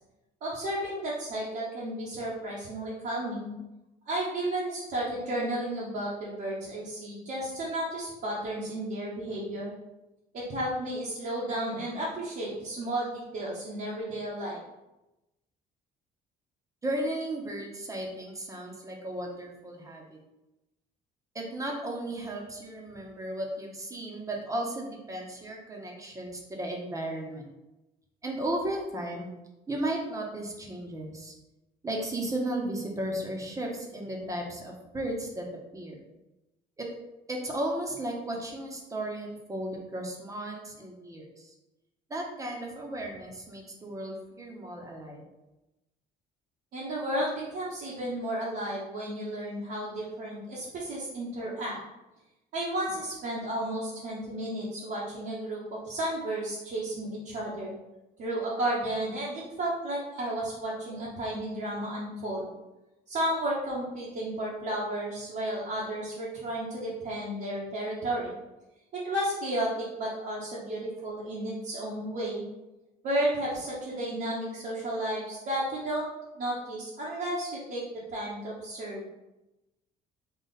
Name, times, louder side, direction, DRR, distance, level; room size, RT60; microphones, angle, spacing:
voice 1, 0.4-3.5 4.1-9.7 10.3-14.6 46.7-51.8 52.5-57.7 58.2-62.5 63.1-68.3 68.9-72.4 73.0-76.1 76.4-77.8 78.1-79.0, right 1 dB, 65° right, -7 dB, 1.1 m, -33 dB
voice 2, 16.8-20.2 21.3-27.5 28.2-29.3 29.7-31.3 31.8-35.4 35.7-36.0 36.8-36.9 37.3-41.5 42.1-45.2, right 1 dB, 20° right, 0 dB, 0.9 m, -35 dB
3.9 x 2.4 x 4.0 m, 0.98 s
cardioid pair, 110°, 17 cm